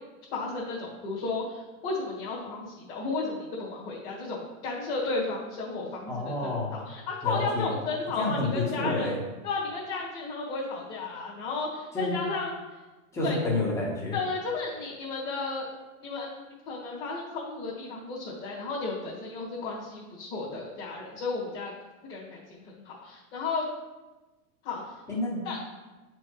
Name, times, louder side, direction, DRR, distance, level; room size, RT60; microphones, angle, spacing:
voice 1, 0.3-9.2 9.4-12.5 13.2-13.4 14.1-15.6 16.0-21.7 22.1-23.6 24.6-24.9 25.4-25.7, left 3 dB, 25° left, -8 dB, 1.6 m, -33 dB
voice 2, 6.1-6.7 7.2-7.7 8.2-9.2 11.9-12.1 13.1-14.2 25.1-25.4, left 2 dB, 5° left, -4 dB, 1.0 m, -29 dB
9.1 x 4.4 x 3.1 m, 1.1 s
supercardioid pair, 160°, 45 cm